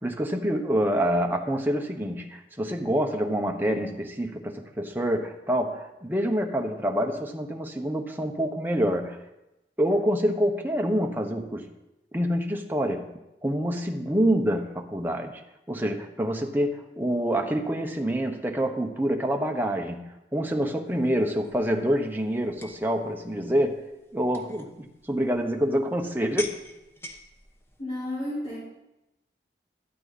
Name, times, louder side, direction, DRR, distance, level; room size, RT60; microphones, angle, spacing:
voice 1, 0.0-9.2 9.8-11.7 12.1-13.1 13.4-15.4 15.7-20.0 20.3-23.8 24.1-26.6, equal, 10° right, 2 dB, 1.0 m, -26 dB
sound 1, 20.9-27.8, left 2 dB, 15° left, 0.9 m, -46 dB
voice 2, 27.8-28.6, left 1 dB, 40° left, -10 dB, 4.6 m, -32 dB
13.0 x 12.0 x 4.2 m, 0.94 s
head